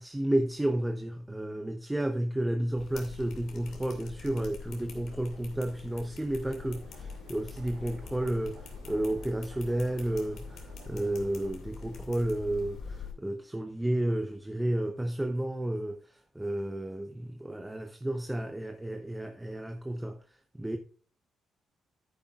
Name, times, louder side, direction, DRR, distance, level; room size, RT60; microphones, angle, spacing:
voice 1, 0.0-20.2 20.5-20.8, right 1 dB, 10° right, 0.9 m, -32 dB
sound 1, 2.8-13.1, left 5 dB, 75° left, 2.4 m, -44 dB
sound 2, 6.5-11.5, right 5 dB, 85° right, 2.3 m, -54 dB
10.0 x 10.0 x 2.4 m
cardioid pair, 90°, 0 cm